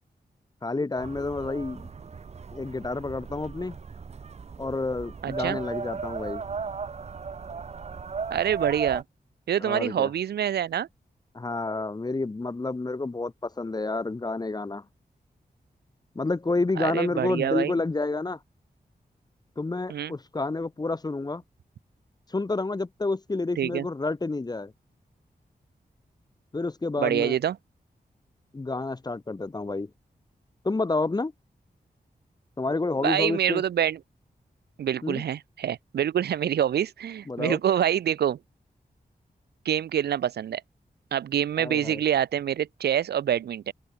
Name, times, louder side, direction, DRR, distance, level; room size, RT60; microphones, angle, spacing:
voice 1, 0.6-1.9 2.5-3.8 4.6-6.4 9.6-10.1 11.3-14.8 16.1-18.4 19.6-21.4 22.3-24.7 26.5-27.4 28.5-29.9 30.6-31.3 32.6-33.6 35.0-35.2 37.3-37.6 41.6-42.0, left 3 dB, 25° left, 0.7 m, -29 dB
sound 1, 1.0-9.0, right 5 dB, 40° right, 0.6 m, -36 dB
voice 2, 5.2-5.6 8.3-9.0 9.5-10.9 16.8-17.7 19.9-20.1 23.6-23.9 27.0-27.6 33.0-34.0 34.8-38.4 39.7-40.6 41.1-43.7, right 9 dB, 85° right, 0.4 m, -26 dB
open air
wide cardioid pair, 90°, 16 cm